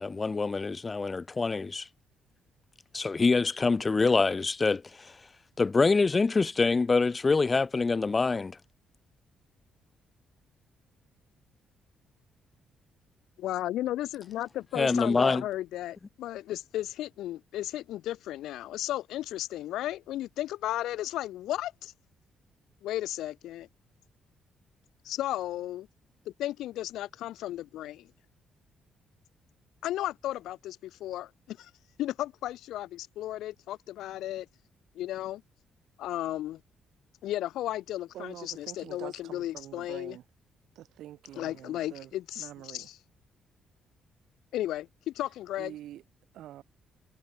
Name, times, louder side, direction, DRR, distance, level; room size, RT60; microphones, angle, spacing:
voice 1, 0.0-1.8 2.9-4.8 5.6-8.5 14.7-15.4, left 4 dB, 30° left, 0.5 m, -25 dB
voice 2, 13.4-21.9 22.8-23.7 25.0-25.9 26.3-28.1 29.8-31.7 32.0-34.5 34.9-35.4 36.0-36.6 37.2-40.2 41.4-43.0 44.5-45.7, left 13 dB, 85° left, 0.6 m, -34 dB
voice 3, 38.1-40.2 40.8-42.9 45.6-46.0 46.3-46.6, right 13 dB, 80° right, 3.5 m, -46 dB
cardioid pair, 90°, 0 cm